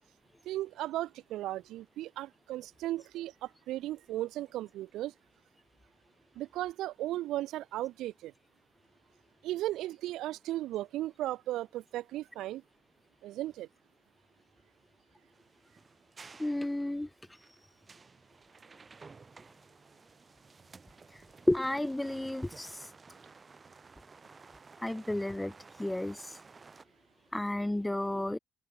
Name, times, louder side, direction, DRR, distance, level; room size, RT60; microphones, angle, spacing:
voice 1, 0.5-5.1 6.4-8.3 9.4-12.6 13.2-13.7, right 15 dB, 75° right, 0.4 m, -36 dB
sound 1, 15.3-26.8, right 4 dB, 20° right, 5.9 m, -55 dB
voice 2, 16.4-17.1 21.5-22.7 24.8-25.5 25.8-26.3 27.3-28.4, left 1 dB, 5° left, 0.6 m, -31 dB
open air
cardioid pair, 180°, 0 cm